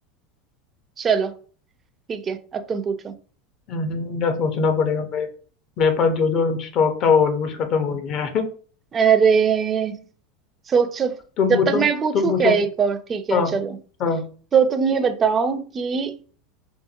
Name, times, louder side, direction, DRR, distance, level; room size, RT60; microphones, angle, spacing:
voice 1, 1.0-1.3 2.1-3.1 8.9-10.0 10.7-11.1 11.5-13.8 14.5-16.2, right 6 dB, 30° right, 0.3 m, -21 dB
voice 2, 3.7-5.3 5.8-8.5 11.4-11.8 12.1-12.5 13.3-13.5 14.0-14.2, left 5 dB, 50° left, 0.5 m, -21 dB
2.8 x 2.2 x 2.4 m
hypercardioid pair, 100°, 0 cm